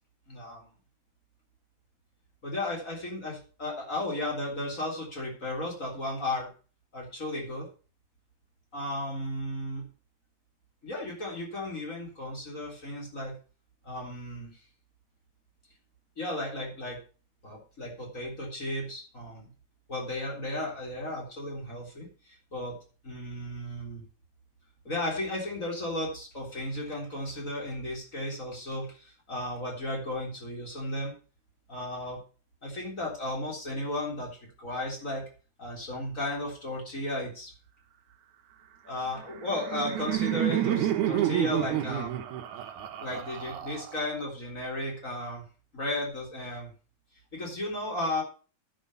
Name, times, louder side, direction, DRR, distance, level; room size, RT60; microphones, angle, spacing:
voice 1, 0.3-0.7 2.4-6.5 6.9-7.7 8.7-9.9 10.8-13.4 13.8-14.6 16.2-17.0 17.4-19.5 19.9-22.8 23.0-24.0 24.8-31.1 31.7-32.2 32.6-35.3 35.6-37.5 38.8-42.2 43.0-45.4 45.7-46.7 47.3-48.2, left 1 dB, 25° left, -2 dB, 3.8 m, -34 dB
Laughter, 39.2-44.2, right 12 dB, 70° right, 2.4 m, -29 dB
10.0 x 6.7 x 6.8 m, 0.37 s
omnidirectional pair, 3.7 m